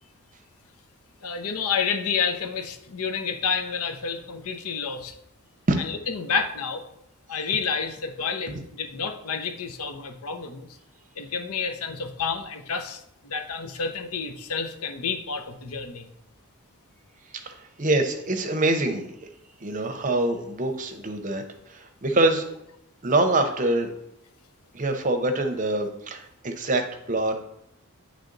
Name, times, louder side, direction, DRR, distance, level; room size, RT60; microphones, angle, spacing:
voice 1, 1.2-5.2 5.8-6.8 7.3-10.7 11.2-16.1, left 6 dB, 85° left, 7 dB, 0.7 m, -29 dB
voice 2, 17.4-19.1 19.6-21.4 21.7-22.5 23.0-23.9 24.7-27.3, right 2 dB, 35° right, 5 dB, 0.7 m, -25 dB
8.9 x 3.3 x 3.9 m, 0.79 s
head